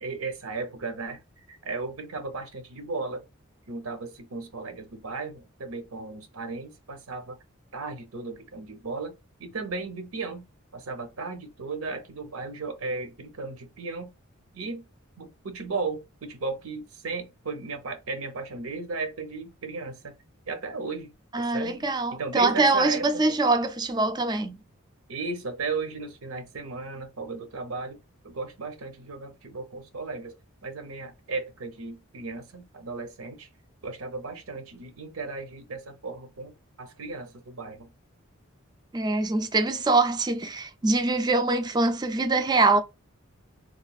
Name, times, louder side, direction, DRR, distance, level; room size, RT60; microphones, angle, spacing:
voice 1, 0.0-1.2 1.5-3.2 3.7-7.4 7.7-9.1 9.4-10.4 10.7-14.1 14.5-14.8 15.2-20.1 20.5-21.1 21.4-21.8 22.1-23.1 25.1-28.0 28.2-30.3 30.6-33.5 33.8-36.5 36.8-37.9, right 4 dB, 85° right, 0.8 m, -35 dB
voice 2, 21.3-24.6 38.9-42.8, right 3 dB, 20° right, 0.3 m, -24 dB
3.1 x 2.4 x 2.3 m
head